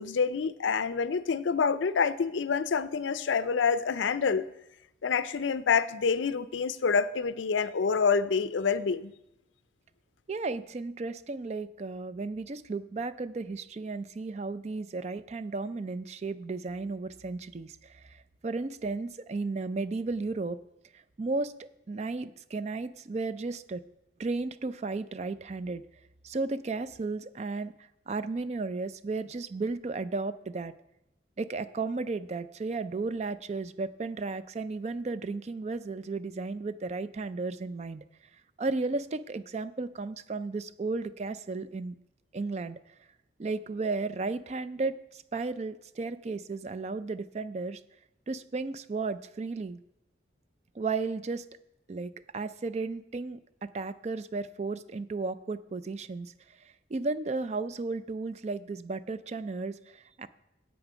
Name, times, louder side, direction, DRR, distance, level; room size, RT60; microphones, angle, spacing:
voice 1, 0.0-4.5 5.0-9.1, left 5 dB, 85° left, 15 dB, 0.5 m, -27 dB
voice 2, 10.3-20.6 20.9-23.8 24.2-25.8 26.2-30.7 31.4-38.0 38.6-41.9 42.3-42.8 43.4-47.8 48.3-49.8 50.8-51.5 51.9-60.3, right 3 dB, 35° right, 14 dB, 0.4 m, -34 dB
9.2 x 8.1 x 5.1 m, 0.84 s
head